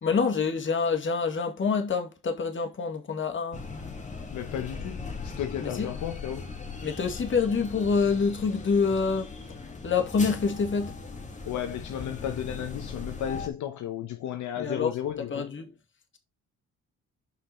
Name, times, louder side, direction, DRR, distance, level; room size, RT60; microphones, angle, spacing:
voice 1, 0.0-3.6 5.6-5.9 6.8-9.3 9.8-11.0 14.6-15.7, left 5 dB, 40° left, 2.0 m, -27 dB
sound 1, 3.5-13.5, left 4 dB, 25° left, 1.9 m, -39 dB
voice 2, 4.3-6.6 11.5-15.5, left 10 dB, 75° left, 1.0 m, -34 dB
6.1 x 5.8 x 4.4 m
cardioid pair, 90°, 30 cm